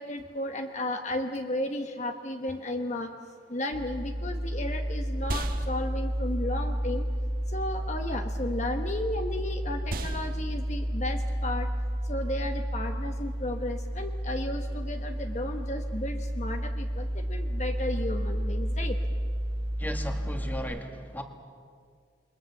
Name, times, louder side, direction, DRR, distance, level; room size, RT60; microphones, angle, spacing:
voice 1, 0.0-3.1 3.5-7.0 7.5-11.7 12.1-19.0, left 1 dB, 40° left, 5 dB, 1.1 m, -34 dB
sound 1, 3.7-20.6, equal, 30° right, 2.4 m, -31 dB
sound 2, 3.9-13.5, right 2 dB, 50° right, 1.4 m, -42 dB
voice 2, 19.8-21.2, equal, 10° left, 5 dB, 1.9 m, -36 dB
28.5 x 22.5 x 7.2 m, 2.1 s
head